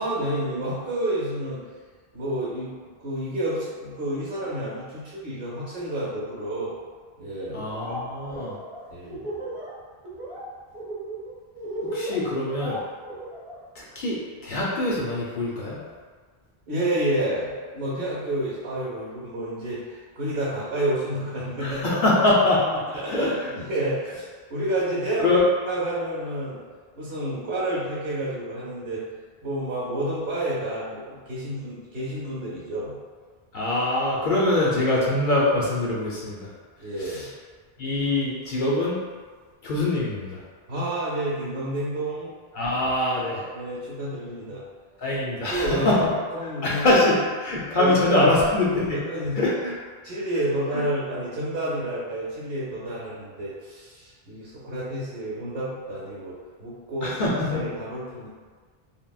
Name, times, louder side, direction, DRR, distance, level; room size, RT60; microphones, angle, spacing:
voice 1, 0.0-1.6 2.1-2.7 3.0-6.7 7.2-7.6 8.9-9.2 16.7-22.0 22.9-25.4 25.7-26.6 26.9-29.0 29.4-32.9 36.8-37.3 40.7-42.3 43.2-44.6 45.5-46.0 46.3-47.0 47.8-48.3 48.9-49.4 50.0-57.2 57.5-58.3, right 1 dB, 70° right, -8 dB, 0.9 m, -29 dB
voice 2, 7.5-8.6 11.9-12.8 13.8-15.8 21.6-23.5 25.2-25.4 33.5-36.5 37.0-37.2 37.8-39.0 39.6-40.4 42.5-43.5 45.0-46.0 46.6-49.0 49.4-49.7 50.7-50.8 57.0-57.6, left 2 dB, 60° left, -5 dB, 0.6 m, -24 dB
Laughter, 7.5-8.0 8.3-9.7 10.0-10.4 10.7-13.6, right 1 dB, 10° right, 1.0 m, -35 dB
3.5 x 2.0 x 2.3 m, 1.5 s
omnidirectional pair, 1.1 m